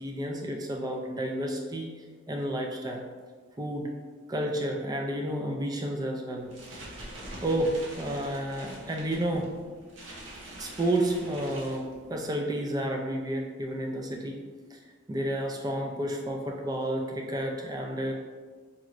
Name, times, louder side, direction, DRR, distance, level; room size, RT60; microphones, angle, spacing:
voice 1, 0.0-1.9 2.3-3.0 3.6-3.9 4.3-6.8 7.4-9.5 10.6-14.4 14.7-14.8 15.1-18.1, right 1 dB, 20° right, 1 dB, 0.3 m, -31 dB
sound 1, 6.4-12.3, right 1 dB, 65° right, 0.8 m, -45 dB
4.2 x 3.0 x 2.5 m, 1.5 s
head